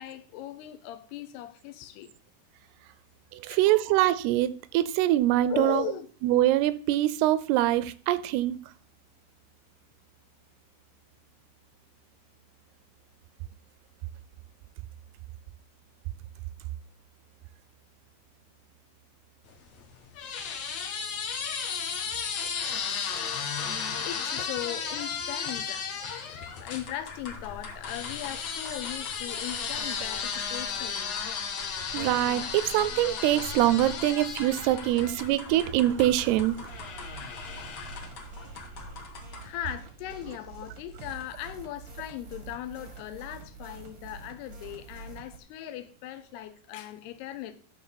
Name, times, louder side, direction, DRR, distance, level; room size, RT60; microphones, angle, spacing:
voice 1, 0.0-2.1 3.5-3.6 5.5-6.1 24.0-25.9 26.6-31.4 39.0-39.1 39.4-47.5, left 12 dB, 80° left, 2.8 m, -38 dB
voice 2, 3.3-5.9 6.2-8.6 31.9-36.7, right 14 dB, 85° right, 2.5 m, -24 dB
sound 1, 19.5-26.9 27.9-35.8 36.6-38.3, left 6 dB, 65° left, 1.7 m, -34 dB
sound 2, 26.5-39.6, left 4 dB, 50° left, 2.0 m, -44 dB
sound 3, 36.0-45.4, right 4 dB, 50° right, 1.0 m, -46 dB
11.5 x 4.0 x 7.0 m
omnidirectional pair, 4.7 m